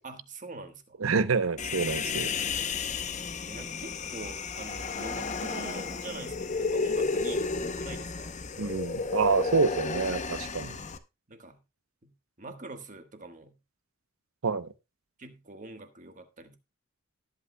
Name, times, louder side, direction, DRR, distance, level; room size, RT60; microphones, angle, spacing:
voice 1, 0.0-1.1 3.0-8.3 11.3-11.6 12.0-12.1 12.4-13.6 15.2-16.6, right 2 dB, 40° right, 1.3 m, -44 dB
voice 2, 1.0-2.3 8.6-10.8 14.4-14.7, right 4 dB, 85° right, 0.7 m, -27 dB
Human voice, 1.6-11.0, left 4 dB, 35° left, 0.7 m, -32 dB
19.0 x 8.3 x 2.2 m
head